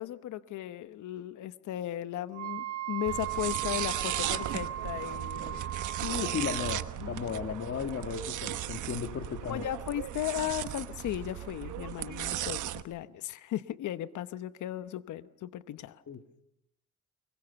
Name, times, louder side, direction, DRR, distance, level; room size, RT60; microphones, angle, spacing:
voice 1, 0.0-5.6 9.5-16.0, left 12 dB, 75° left, 12 dB, 0.9 m, -36 dB
Wind instrument woodwind instrument, 2.3-6.9, right 11 dB, 50° right, 3.9 m, -37 dB
sound 1, 3.1-12.8, right 13 dB, 80° right, 1.1 m, -36 dB
voice 2, 6.0-9.7 16.1-16.4, left 7 dB, 50° left, 5 dB, 1.6 m, -35 dB
24.5 x 22.0 x 6.9 m, 0.85 s
cardioid pair, 90°, 30 cm